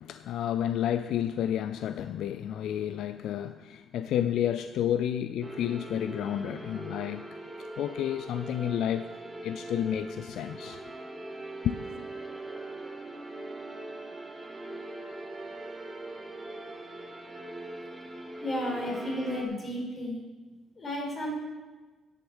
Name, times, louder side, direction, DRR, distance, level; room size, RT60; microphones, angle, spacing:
voice 1, 0.0-7.3 7.8-9.1 9.4-10.8 11.6-11.9, left 10 dB, 80° left, 0.3 m, -30 dB
sound 1, 5.4-19.4, right 2 dB, 10° right, 1.7 m, -41 dB
voice 2, 18.4-20.2 20.8-21.3, equal, 35° left, 4.4 m, -32 dB
10.5 x 7.9 x 6.2 m
cardioid pair, 90°, 0 cm